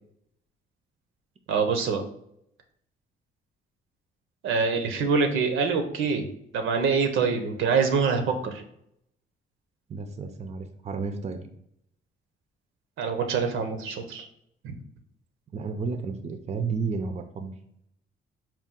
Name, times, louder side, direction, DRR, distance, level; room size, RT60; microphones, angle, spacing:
voice 1, 1.5-2.0 4.4-6.3 6.5-8.6 13.0-14.3 14.6-14.8, right 5 dB, 80° right, 5 dB, 0.7 m, -25 dB
voice 2, 9.9-11.5 15.5-17.5, right 4 dB, 35° right, 7 dB, 0.5 m, -32 dB
4.4 x 2.3 x 3.7 m, 0.75 s
cardioid pair, 90°, 20 cm